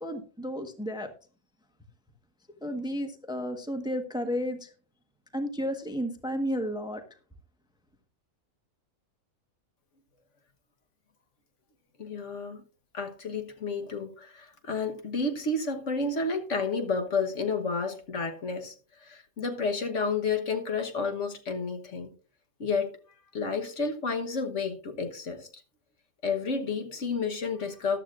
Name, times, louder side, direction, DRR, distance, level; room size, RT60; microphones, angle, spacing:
voice 1, 0.0-1.1 2.6-4.7 5.3-7.0, equal, 5° right, 1.1 m, -32 dB
voice 2, 12.0-12.6 12.9-18.7 19.0-22.1 22.6-23.0 23.3-25.5 26.2-28.0, left 4 dB, 55° left, 1.5 m, -31 dB
14.0 x 11.5 x 2.5 m
omnidirectional pair, 1.5 m